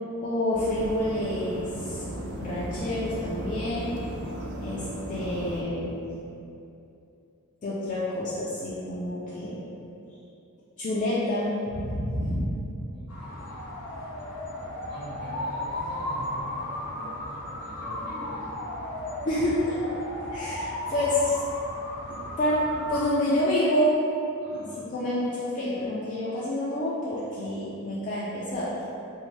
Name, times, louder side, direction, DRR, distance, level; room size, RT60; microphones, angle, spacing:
voice 1, 0.2-2.0 2.4-3.9 4.6-4.8 5.1-6.0 7.6-9.6 10.8-11.5 11.7-12.5 19.2-19.8 20.3-21.3 22.4-23.9 24.5-28.7, left 1 dB, 35° left, -10 dB, 0.3 m, -28 dB
sound 1, 0.5-5.6, right 1 dB, 70° right, 0.4 m, -36 dB
voice 2, 12.9-13.6 14.8-18.5 24.4-24.9, equal, 45° right, -10 dB, 1.0 m, -43 dB
sound 2, 13.1-23.1, left 1 dB, 85° left, 0.7 m, -35 dB
2.7 x 2.1 x 3.1 m, 2.7 s
head